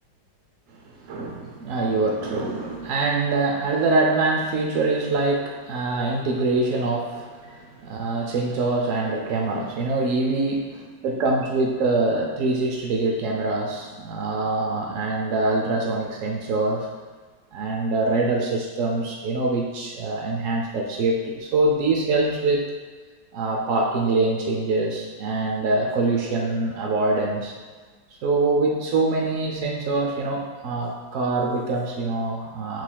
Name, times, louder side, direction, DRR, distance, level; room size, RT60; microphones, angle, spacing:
voice 1, 1.0-16.9 17.5-22.7 23.3-27.5 28.2-32.8, right 2 dB, 90° right, 0 dB, 0.7 m, -24 dB
6.2 x 3.3 x 2.2 m, 1.5 s
omnidirectional pair, 2.0 m